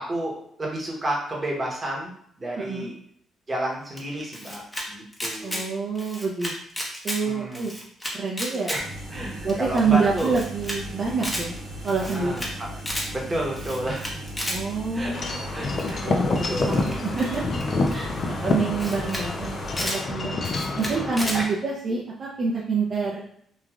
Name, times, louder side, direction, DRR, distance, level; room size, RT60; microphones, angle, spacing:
voice 1, 0.0-2.9 3.5-5.7 7.2-7.7 8.7-8.8 9.1-10.4 12.0-14.1 14.9-17.0 18.4-18.5 20.5-20.9 21.3-21.5, right 1 dB, 25° right, -2 dB, 1.0 m, -31 dB
voice 2, 2.6-2.9 5.4-6.5 7.0-7.7 8.1-8.7 9.4-11.6 11.8-12.3 14.5-15.4 16.0-16.8 17.0-17.4 17.9-20.4 20.7-23.2, right 4 dB, 45° right, -3 dB, 0.5 m, -27 dB
Camera, 4.0-4.8 5.1-5.6 5.9-7.2 7.5-8.8 9.1-9.2 9.5-9.6 9.8-9.9 10.2-10.8 11.1-11.4 11.8-12.5 12.8-13.1 13.5-14.6 15.8-16.1 16.7-17.9 18.5-18.6 18.8-19.2 19.5-20.0 20.4-21.4, equal, 10° left, 0.8 m, -32 dB
sound 1, 8.8-19.9, right 1 dB, 75° right, 0.9 m, -37 dB
Wind chime / Wind, 15.1-21.4, left 3 dB, 45° left, 0.4 m, -27 dB
3.0 x 2.4 x 2.3 m, 0.67 s
cardioid pair, 90°, 0 cm